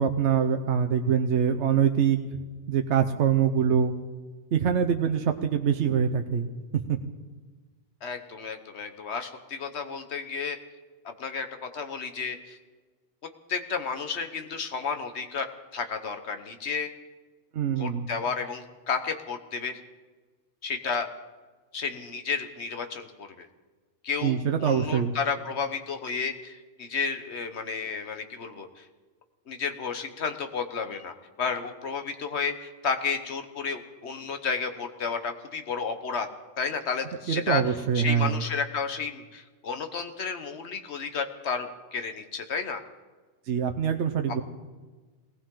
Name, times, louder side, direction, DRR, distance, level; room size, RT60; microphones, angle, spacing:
voice 1, 0.0-2.2 2.7-3.9 4.5-6.5 6.7-7.0 17.5-18.1 24.2-25.1 37.3-38.4 43.5-44.4, right 7 dB, 70° right, 5 dB, 1.1 m, -24 dB
voice 2, 8.0-10.6 11.0-12.6 13.5-15.5 15.7-16.9 17.8-19.8 20.6-21.1 21.7-23.5 24.0-28.9 29.5-36.3 36.6-37.6 37.9-42.8, left 5 dB, 65° left, 7 dB, 1.4 m, -32 dB
20.0 x 18.5 x 3.8 m, 1.3 s
omnidirectional pair, 1.2 m